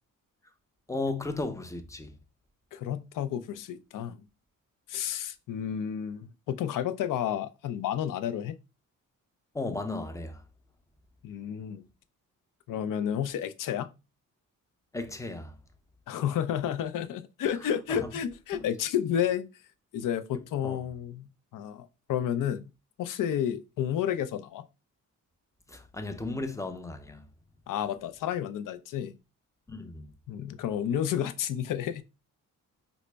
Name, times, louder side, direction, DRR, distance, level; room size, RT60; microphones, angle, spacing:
voice 1, 0.9-2.2 9.5-10.4 14.9-15.6 17.9-18.1 18.5-18.6 20.6-20.8 25.7-27.3 29.7-30.1, left 2 dB, 10° left, 0.5 m, -35 dB
voice 2, 2.7-4.2 4.9-8.6 11.2-11.9 12.7-13.9 16.1-19.5 19.9-22.6 23.0-24.7 27.7-29.1 30.3-32.0, left 9 dB, 70° left, 0.5 m, -31 dB
3.9 x 2.0 x 3.3 m
cardioid pair, 80°, 33 cm